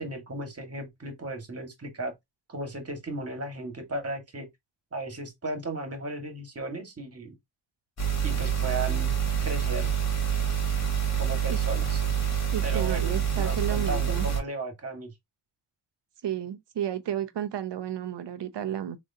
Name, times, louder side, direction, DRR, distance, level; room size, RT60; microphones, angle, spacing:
voice 1, 0.0-2.1 2.5-4.5 4.9-7.3 8.2-9.1 9.4-9.9 11.2-12.0 12.6-15.1, right 2 dB, 35° right, 1.8 m, -35 dB
sound 1, 8.0-14.4, right 8 dB, 40° left, 2.3 m, -27 dB
voice 2, 12.5-14.3 16.2-19.0, right 10 dB, 75° right, 0.8 m, -32 dB
3.6 x 3.1 x 2.7 m
cardioid pair, 60°, 42 cm